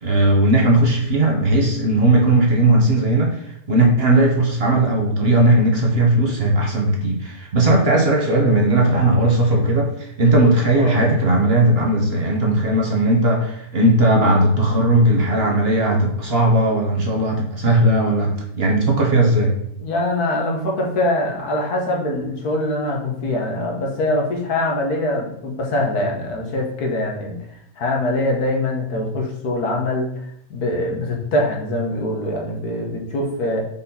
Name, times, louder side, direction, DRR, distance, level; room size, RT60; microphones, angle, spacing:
voice 1, 0.0-3.4 3.7-19.5, right 1 dB, 45° right, 0 dB, 1.1 m, -17 dB
voice 2, 10.7-11.1 19.8-27.4 27.8-30.1 30.5-33.6, left 1 dB, 65° left, 0 dB, 1.7 m, -23 dB
5.4 x 4.2 x 4.2 m, 0.74 s
omnidirectional pair, 1.8 m